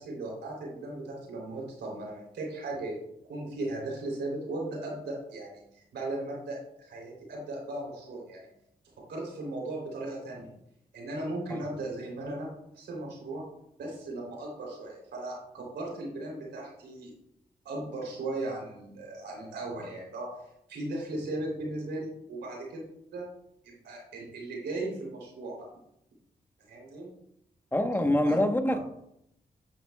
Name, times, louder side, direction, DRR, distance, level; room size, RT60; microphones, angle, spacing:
voice 1, 0.0-8.5 9.1-10.5 10.9-13.4 13.8-17.1 17.6-20.3 20.7-22.8 23.1-23.3 23.6-25.6 26.6-27.1 28.0-28.4, right 2 dB, 90° right, -2 dB, 3.7 m, -37 dB
voice 2, 27.7-28.8, left 1 dB, 10° left, 6 dB, 1.3 m, -25 dB
11.5 x 8.1 x 2.4 m, 0.76 s
cardioid pair, 50°, 17 cm